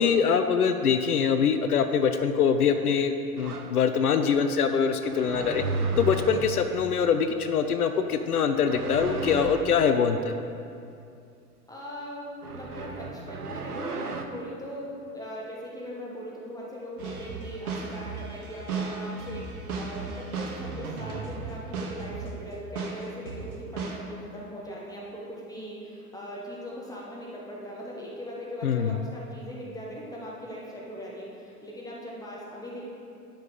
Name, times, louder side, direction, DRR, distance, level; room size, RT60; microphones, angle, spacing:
voice 1, 0.0-5.6 6.0-10.3 28.6-29.0, left 6 dB, 75° left, 8 dB, 0.5 m, -24 dB
sound 1, 3.4-3.7 5.0-6.7 8.5-9.8 12.4-14.2, right 2 dB, 90° right, 0.6 m, -33 dB
voice 2, 11.7-32.8, equal, 10° left, -4 dB, 1.4 m, -40 dB
sound 2, 17.0-22.4 22.7-24.0, right 4 dB, 70° right, 1.1 m, -35 dB
11.5 x 5.5 x 3.7 m, 2.5 s
figure-of-eight pair, 85°, 45 cm